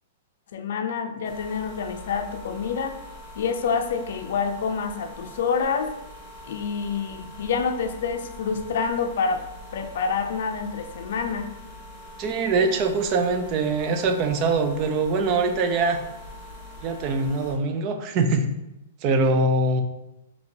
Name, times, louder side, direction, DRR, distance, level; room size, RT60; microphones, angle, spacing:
voice 1, 0.5-3.0 3.4-5.9 6.5-9.4 9.7-11.5, left 5 dB, 65° left, 7 dB, 0.4 m, -27 dB
sound 1, 1.2-17.5, left 1 dB, 30° left, 1.1 m, -43 dB
voice 2, 12.2-16.0 16.8-18.5 19.0-19.8, right 3 dB, 35° right, 6 dB, 0.4 m, -23 dB
2.8 x 2.8 x 4.4 m, 0.90 s
hypercardioid pair, 150°, 0 cm